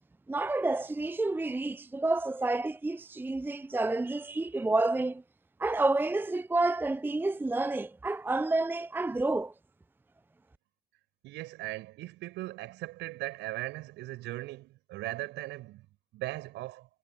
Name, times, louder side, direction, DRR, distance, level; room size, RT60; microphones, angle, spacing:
voice 1, 0.3-5.2 5.6-9.5, right 2 dB, 10° right, 0.6 m, -29 dB
voice 2, 11.2-15.9 16.1-16.9, right 18 dB, 60° right, 6.8 m, -39 dB
figure-of-eight pair, 50°, 20 cm